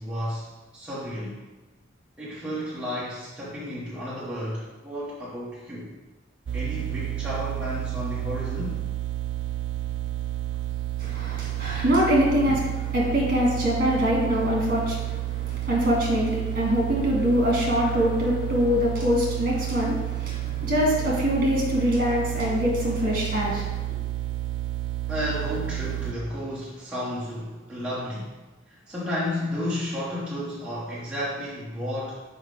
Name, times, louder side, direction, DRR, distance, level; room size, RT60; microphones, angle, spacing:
voice 1, 0.0-1.5 2.2-5.9 6.5-8.8 25.1-28.4 28.7-32.2, left 1 dB, 5° right, -8 dB, 1.0 m, -32 dB
sound 1, 6.5-26.1, right 14 dB, 65° right, 0.4 m, -30 dB
voice 2, 11.0-23.7, equal, 45° right, -3 dB, 2.2 m, -24 dB
5.8 x 5.2 x 4.9 m, 1.2 s
head